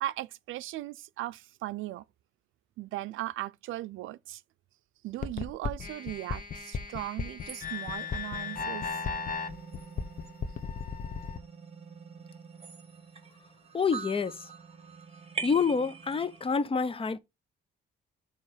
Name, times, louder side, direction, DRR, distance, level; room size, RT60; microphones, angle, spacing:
voice 1, 0.0-2.0 2.8-4.4 5.0-9.1, right 15 dB, 80° right, 0.4 m, -38 dB
sound 1, 5.2-11.4, left 5 dB, 45° left, 0.9 m, -35 dB
sound 2, 7.4-16.5, right 6 dB, 30° right, 1.3 m, -45 dB
voice 2, 13.7-14.5 15.4-17.2, left 5 dB, 30° left, 0.6 m, -28 dB
7.0 x 3.0 x 4.9 m
cardioid pair, 90°, 20 cm